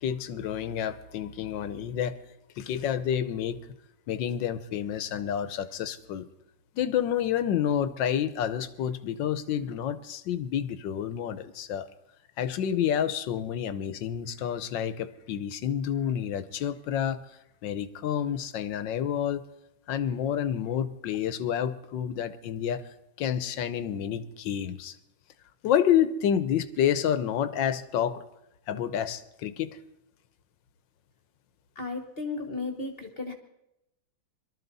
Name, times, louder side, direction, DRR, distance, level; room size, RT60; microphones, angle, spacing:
voice 1, 0.0-2.2 2.6-3.6 4.1-6.3 6.8-11.9 12.4-17.2 17.6-19.4 19.9-22.8 23.2-24.9 25.6-28.2 28.7-29.8, left 9 dB, 70° left, 14 dB, 1.5 m, -29 dB
voice 2, 31.7-33.3, left 3 dB, 35° left, 5 dB, 1.3 m, -34 dB
23.0 x 13.0 x 4.1 m, 0.84 s
omnidirectional pair, 2.2 m